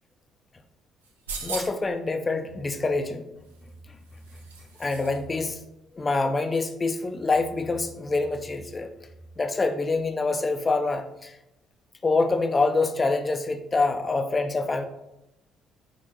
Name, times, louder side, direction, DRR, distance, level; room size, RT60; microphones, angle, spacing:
sound 1, 1.0-1.9 3.4-5.2 5.5-5.6, right 4 dB, 85° right, 0.5 m, -39 dB
voice 1, 1.4-3.3 4.8-5.6 6.0-8.9 9.4-11.3 12.0-14.8, left 3 dB, 30° left, 7 dB, 0.4 m, -26 dB
4.1 x 3.7 x 2.9 m, 0.89 s
figure-of-eight pair, 50°, 0 cm